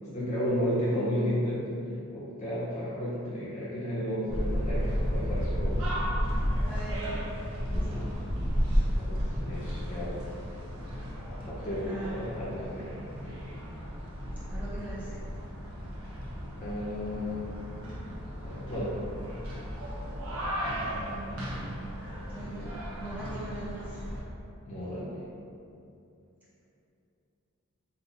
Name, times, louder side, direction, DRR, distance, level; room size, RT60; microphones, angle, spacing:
voice 1, 0.0-1.7 2.1-5.8 7.8-8.0 8.9-10.2 11.4-12.9 13.2-13.4 16.5-17.4 18.4-19.0 24.6-25.2, equal, 30° left, -8 dB, 0.6 m, -33 dB
sound 1, 4.3-24.2, equal, 70° right, 0.9 m, -33 dB
voice 2, 6.6-7.3 7.8-8.1 11.9-12.2 14.5-15.2 20.9-21.9 22.3-24.2, right 2 dB, 5° right, -11 dB, 1.2 m, -42 dB
3.8 x 2.8 x 4.3 m, 2.7 s
head